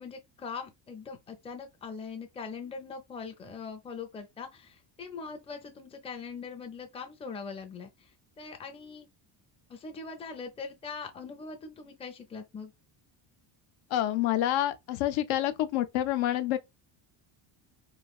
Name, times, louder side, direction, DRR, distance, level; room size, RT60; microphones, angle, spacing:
voice 1, 0.0-9.1 9.7-12.7, left 5 dB, 15° left, 0.4 m, -42 dB
voice 2, 13.9-16.6, left 13 dB, 70° left, 0.5 m, -28 dB
3.2 x 2.3 x 2.3 m
cardioid pair, 130°, 48 cm